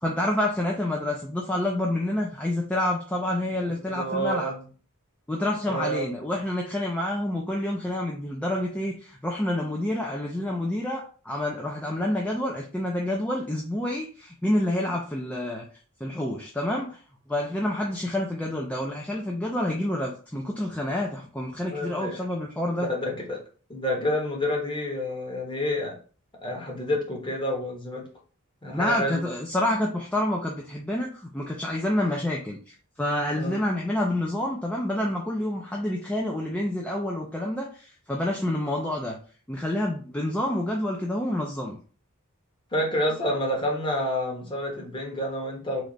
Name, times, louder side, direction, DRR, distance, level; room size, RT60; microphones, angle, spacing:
voice 1, 0.0-4.5 5.3-15.6 16.0-17.0 17.3-22.9 28.7-39.2 39.5-41.8, left 1 dB, 5° left, -1 dB, 0.4 m, -28 dB
voice 2, 3.7-4.6 5.7-6.0 21.6-22.2 22.8-23.4 23.7-25.9 26.4-28.0 28.6-29.2 33.3-33.6 42.7-45.8, equal, 20° left, -1 dB, 1.0 m, -29 dB
3.2 x 2.4 x 3.9 m, 0.40 s
head